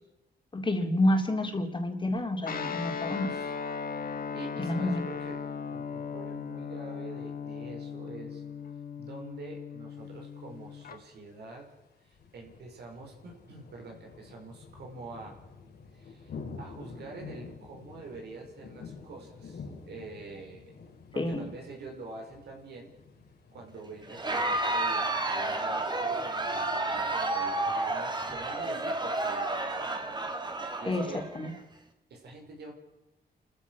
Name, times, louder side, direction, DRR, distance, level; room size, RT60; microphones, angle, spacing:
voice 1, 0.5-3.3 4.6-5.1 21.2-21.4 30.9-31.0 31.3-31.5, left 1 dB, 30° left, 4 dB, 3.4 m, -29 dB
Guitar, 2.4-11.0, left 6 dB, 60° left, 1.6 m, -37 dB
voice 2, 3.0-3.5 4.3-5.4 5.7-8.4 9.0-11.7 12.0-15.4 15.9-20.8 21.1-22.9 23.5-30.1 30.5-31.3 32.1-32.7, right 3 dB, 85° right, 2 dB, 5.1 m, -46 dB
sound 1, 10.0-29.3, left 4 dB, 80° left, 4.0 m, -50 dB
Crowd, 24.1-31.6, right 2 dB, 25° right, 2.6 m, -31 dB
29.5 x 14.5 x 6.2 m, 0.99 s
cardioid pair, 80°, 17 cm